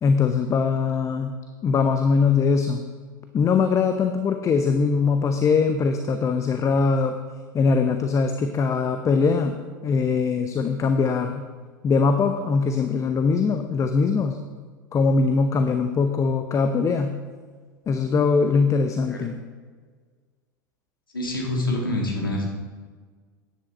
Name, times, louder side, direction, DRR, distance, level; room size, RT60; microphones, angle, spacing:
voice 1, 0.0-1.3 1.6-2.8 3.3-7.2 7.5-11.4 11.8-14.4 14.9-17.2 17.9-19.4, left 5 dB, 30° left, 7 dB, 0.7 m, -21 dB
voice 2, 21.1-22.5, left 1 dB, 85° left, 0 dB, 2.1 m, -26 dB
10.5 x 9.9 x 4.4 m, 1.5 s
figure-of-eight pair, 85°, 11 cm